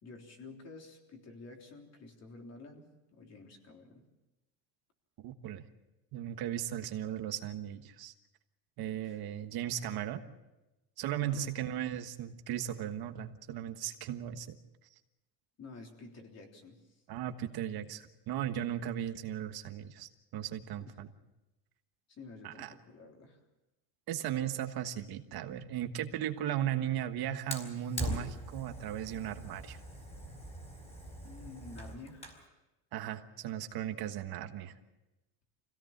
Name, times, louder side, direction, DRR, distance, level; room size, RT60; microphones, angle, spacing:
voice 1, 0.0-2.8 3.1-4.1 9.0-9.2 11.2-11.5 15.6-16.9 20.9-21.0 22.1-23.4 31.2-32.5, left 3 dB, 35° left, 2 dB, 3.6 m, -50 dB
voice 2, 5.2-5.6 6.1-8.1 8.8-10.2 11.0-14.6 17.1-21.1 22.4-22.7 24.1-29.8 32.9-34.7, right 11 dB, 60° right, 7 dB, 1.4 m, -37 dB
Fire, 27.5-32.5, equal, 15° left, 4.2 m, -42 dB
25.5 x 17.0 x 7.3 m, 1.0 s
cardioid pair, 150°, 42 cm